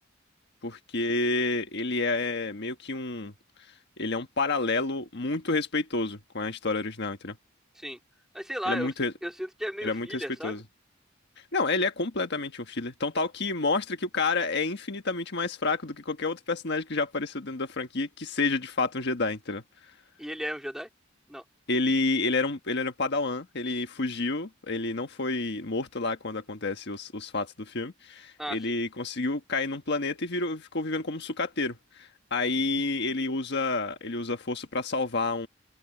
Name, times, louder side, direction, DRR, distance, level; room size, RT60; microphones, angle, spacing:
voice 1, 0.6-3.3 4.0-7.4 8.7-9.1 9.8-10.6 11.5-19.6 21.7-35.5, left 3 dB, 55° left, 1.5 m, -29 dB
voice 2, 8.3-8.9 9.2-10.6 20.2-20.9 21.3-21.4 28.4-28.8, equal, ahead, 2.9 m, -35 dB
open air
head